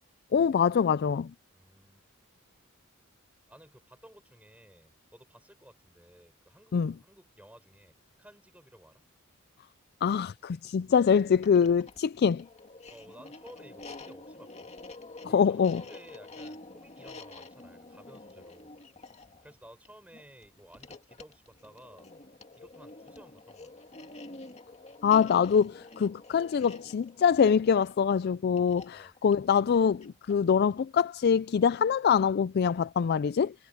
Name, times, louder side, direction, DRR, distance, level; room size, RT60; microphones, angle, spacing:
voice 1, 0.3-1.3 6.7-6.9 10.0-12.5 15.3-15.8 25.0-33.5, left 7 dB, 50° left, 0.3 m, -24 dB
voice 2, 1.5-2.1 3.5-9.0 12.9-14.7 15.2-18.8 19.4-22.1 22.5-23.7 28.9-29.1, right 1 dB, 5° right, 6.7 m, -55 dB
sound 1, 11.3-30.5, left 2 dB, 30° left, 2.1 m, -48 dB
head